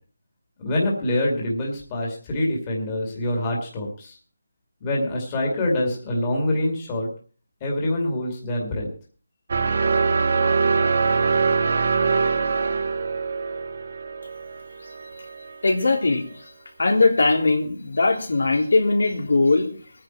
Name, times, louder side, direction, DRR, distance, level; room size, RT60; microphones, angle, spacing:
voice 1, 0.6-4.2 4.8-7.1 7.6-8.9, left 1 dB, 15° left, -2 dB, 2.4 m, -25 dB
sound 1, 9.5-15.5, right 4 dB, 35° right, 1.4 m, -23 dB
voice 2, 15.6-16.2 16.8-19.7, left 3 dB, 70° left, 3 dB, 3.3 m, -20 dB
20.5 x 10.0 x 4.5 m, 0.41 s
figure-of-eight pair, 175°, 0 cm